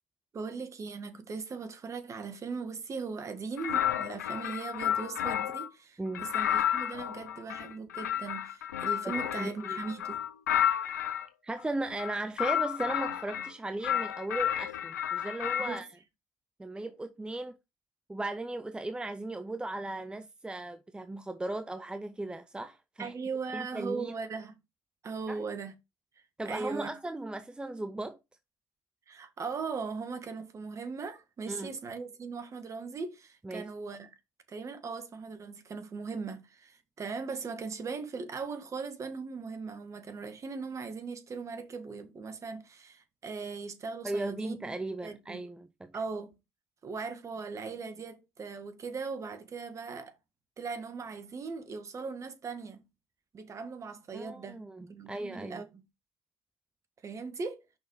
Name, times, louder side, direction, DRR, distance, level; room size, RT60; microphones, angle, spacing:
voice 1, 0.3-10.2 15.6-15.8 23.0-24.6 25.0-25.7 26.4-26.9 29.1-34.1 34.5-44.7 45.0-45.4 45.9-46.3 46.8-50.1 50.6-52.8 53.3-55.8 57.0-57.6, right 4 dB, 35° right, 1.6 m, -39 dB
sound 1, 3.6-5.7 6.1-11.3 11.9-13.5 13.8-15.8, left 10 dB, 85° left, 0.6 m, -31 dB
voice 2, 9.0-9.8 11.4-15.9 16.6-17.5 18.1-23.1 23.5-24.2 25.3-25.4 26.4-28.2 31.5-31.7 33.4-33.7 44.0-45.9 54.1-55.6, right 2 dB, 10° right, 0.7 m, -37 dB
5.7 x 5.7 x 4.8 m
hypercardioid pair, 70°, 9 cm